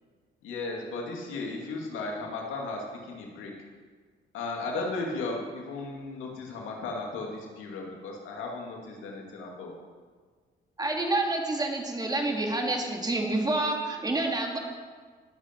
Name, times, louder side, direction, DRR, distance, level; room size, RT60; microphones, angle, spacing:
voice 1, 0.4-3.5 4.3-9.7, left 3 dB, 90° left, 0 dB, 2.4 m, -35 dB
voice 2, 10.8-14.6, right 2 dB, 20° right, 1 dB, 2.2 m, -28 dB
19.0 x 7.9 x 4.5 m, 1.5 s
cardioid pair, 90°, 20 cm